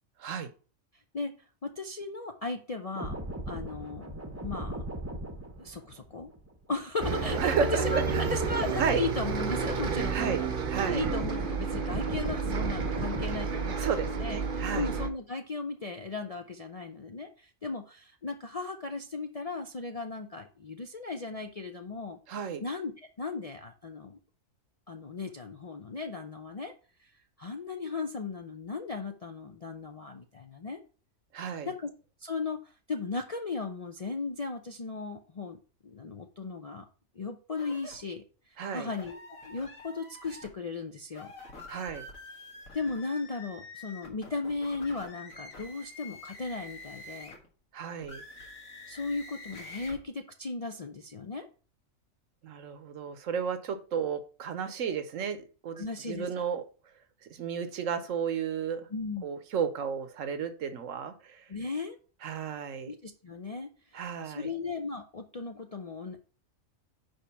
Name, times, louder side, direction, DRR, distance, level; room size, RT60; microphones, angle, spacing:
voice 1, 0.2-0.5 7.4-8.4 8.8-9.0 10.1-11.0 13.8-14.9 22.3-22.6 31.3-31.7 38.6-38.9 41.7-42.1 47.7-48.2 52.4-56.7 57.2-58.9 59.2-61.4 62.2-62.9 63.9-64.5, right 7 dB, 70° right, 10 dB, 1.2 m, -33 dB
voice 2, 1.6-4.1 4.4-4.8 5.6-6.3 6.7-10.5 10.8-22.2 22.6-22.9 23.2-24.2 24.9-26.7 27.0-27.1 27.4-30.8 31.6-31.9 32.2-36.8 37.2-38.2 38.5-41.3 42.7-47.3 48.9-51.5 55.8-56.4 58.9-59.3 61.5-62.0 62.9-66.2, left 4 dB, 45° left, 4 dB, 0.4 m, -36 dB
sound 1, 2.9-10.4 10.7-14.4 14.7-15.0, right 1 dB, 15° right, 0.7 m, -39 dB
Bus, 7.0-15.1, right 5 dB, 45° right, 0.9 m, -31 dB
sound 2, 37.5-38.0 38.9-40.5 41.1-47.5 48.0-50.0, left 2 dB, 75° left, 2.2 m, -47 dB
5.3 x 5.1 x 5.6 m, 0.38 s
omnidirectional pair, 1.4 m